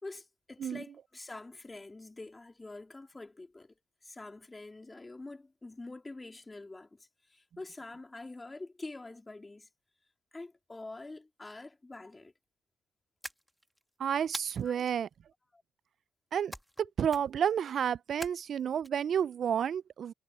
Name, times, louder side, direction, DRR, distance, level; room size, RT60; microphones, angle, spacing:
voice 1, 0.0-3.8 4.0-9.7 10.3-12.3 14.6-14.8 15.5-15.6, left 2 dB, 20° left, 3.6 m, -46 dB
sound 1, 13.2-13.8 14.3-14.9 16.5-16.8 17.1-17.5 18.2-18.9, equal, ahead, 2.0 m, -44 dB
voice 2, 14.0-15.1 16.3-20.1, right 8 dB, 60° right, 0.3 m, -31 dB
cardioid pair, 90°, 0 cm